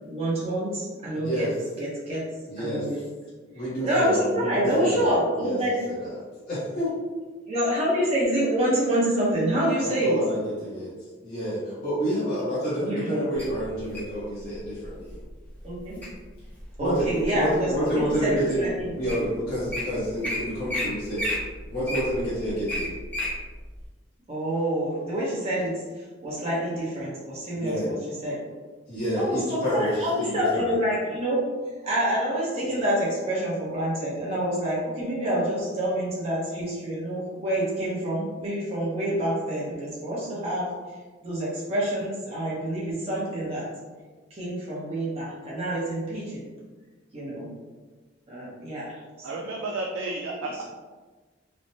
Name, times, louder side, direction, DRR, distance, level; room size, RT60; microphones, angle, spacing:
voice 1, 0.1-1.5 1.8-2.2 2.6-3.0 3.8-5.7 7.5-10.2 12.8-13.3 15.6-16.0 16.8-18.9 24.3-25.7 26.2-28.0 28.2-28.4 29.1-31.4 31.8-40.7 41.2-43.7 44.3-46.5 47.1-47.5 48.3-49.4 50.4-50.6, right 1 dB, 30° right, -6 dB, 0.8 m, -27 dB
voice 2, 1.1-1.5 2.4-3.0 3.5-5.6 5.9-6.2 6.5-6.9 9.8-10.9 11.2-15.2 16.8-22.9 27.6-27.9 28.9-30.7, equal, 50° left, -11 dB, 0.8 m, -29 dB
Wild animals, 13.4-14.1 14.8-15.1 15.6-16.1 16.6-17.5 18.1-18.2 18.8-18.9 19.1-19.2 19.5-19.8 20.2-20.4 20.7-20.9 21.1-23.3 23.8-23.9, left 1 dB, 10° left, 0.7 m, -30 dB
voice 3, 49.2-50.5, right 2 dB, 80° right, -1 dB, 0.3 m, -31 dB
3.2 x 2.1 x 2.7 m, 1.3 s
head